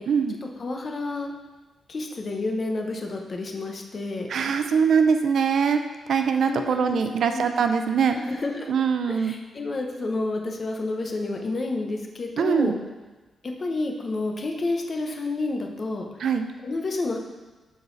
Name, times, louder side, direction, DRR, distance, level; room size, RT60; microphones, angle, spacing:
voice 1, 0.4-1.3 1.9-4.3 6.4-7.5 8.1-12.8 13.6-16.1 16.6-17.2, left 2 dB, 40° left, 2 dB, 0.9 m, -30 dB
voice 2, 4.3-5.8 6.1-8.2 8.7-9.3 12.4-12.8 16.2-16.5, right 6 dB, 70° right, 7 dB, 0.5 m, -22 dB
12.0 x 4.0 x 4.0 m, 1.2 s
wide cardioid pair, 130°, 0 cm